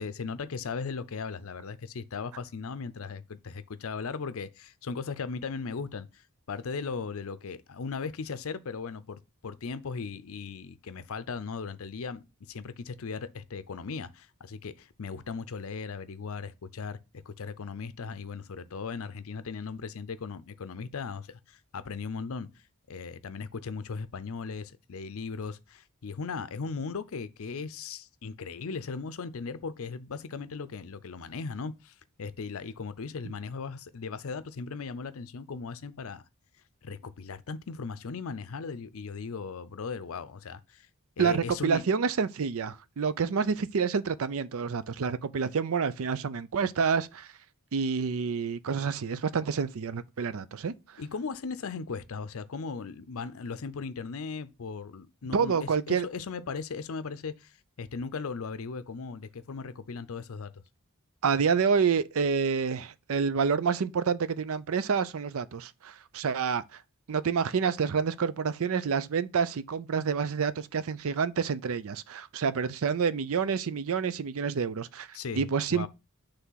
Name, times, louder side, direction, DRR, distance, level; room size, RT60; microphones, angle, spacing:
voice 1, 0.0-17.0 17.3-22.5 22.9-36.2 36.8-40.9 41.2-41.8 51.0-60.5 75.1-75.4 75.7-75.9, left 5 dB, 65° left, 0.5 m, -37 dB
voice 2, 41.2-47.3 47.7-51.0 55.3-56.1 61.2-66.8 67.1-75.9, right 6 dB, 65° right, 0.5 m, -28 dB
5.9 x 3.4 x 5.6 m
head